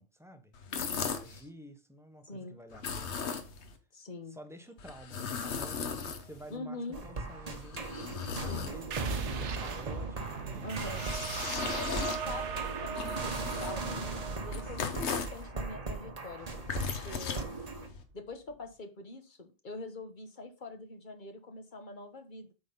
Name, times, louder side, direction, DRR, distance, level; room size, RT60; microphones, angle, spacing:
voice 1, 0.0-0.5 1.0-3.2 4.3-10.8, right 1 dB, 5° right, 0.9 m, -51 dB
sound 1, 0.5-1.4 2.7-3.8 4.8-6.6 7.3-9.1 10.5-15.4 16.4-18.0, left 6 dB, 70° left, 1.3 m, -38 dB
voice 2, 0.7-1.5 2.2-2.6 3.9-4.4 6.5-7.0 8.5-8.8 10.6-11.1 11.7-16.5 16.8-17.5 18.1-22.5, left 2 dB, 45° left, 1.3 m, -44 dB
sound 2, 6.9-17.9, right 3 dB, 35° right, 1.1 m, -39 dB
sound 3, 8.9-18.1, right 6 dB, 75° right, 1.2 m, -40 dB
8.5 x 4.0 x 5.4 m
omnidirectional pair, 1.2 m